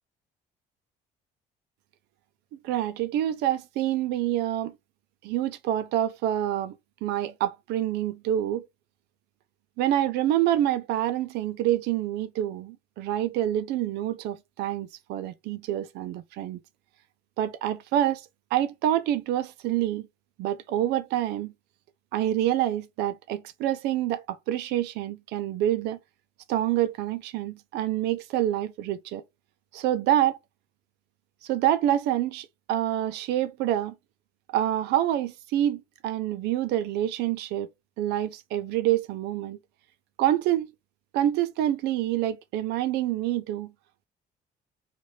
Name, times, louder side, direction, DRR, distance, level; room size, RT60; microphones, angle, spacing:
voice 1, 2.6-4.7 5.2-8.7 9.8-16.6 17.4-18.3 18.5-20.1 20.4-21.5 22.1-26.0 26.5-29.2 29.7-30.4 31.4-33.9 34.5-37.7 38.0-39.6 40.2-40.7 41.1-43.7, right 12 dB, 85° right, 0.5 m, -27 dB
3.1 x 2.5 x 4.1 m
cardioid pair, 110°, 17 cm